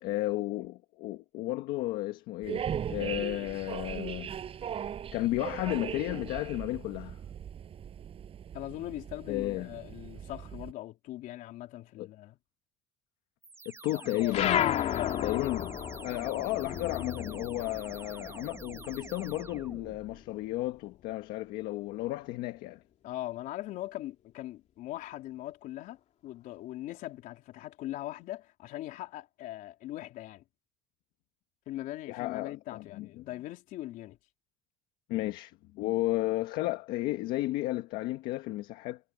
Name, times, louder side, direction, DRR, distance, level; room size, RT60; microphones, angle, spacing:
voice 1, 0.0-4.3 4.7-4.8 5.1-7.2 9.3-9.7 12.0-12.1 13.7-14.7 15.2-15.8 16.0-22.8 32.1-33.1 35.1-39.0, left 17 dB, 90° left, 1.7 m, -33 dB
sound 1, 2.4-10.7, right 8 dB, 40° right, 6.7 m, -39 dB
voice 2, 8.5-12.4 13.9-14.4 14.7-15.5 23.0-30.4 31.7-34.2, left 15 dB, 70° left, 3.7 m, -41 dB
sound 2, 13.4-20.2, right 4 dB, 20° right, 1.7 m, -47 dB
sound 3, 14.3-19.2 19.5-20.9, left 11 dB, 50° left, 2.6 m, -33 dB
cardioid pair, 140°, 15 cm